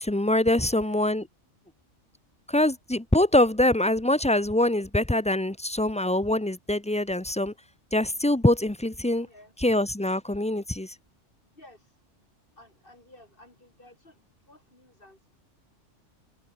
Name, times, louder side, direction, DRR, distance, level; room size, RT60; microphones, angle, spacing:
voice 1, 0.0-1.3 2.5-7.5 7.9-9.3 9.6-10.9, left 1 dB, 5° left, 0.7 m, -24 dB
voice 2, 0.6-1.1 9.2-9.5 11.6-11.9 12.6-15.4, left 1 dB, 45° left, 7.3 m, -54 dB
omnidirectional pair, 1.2 m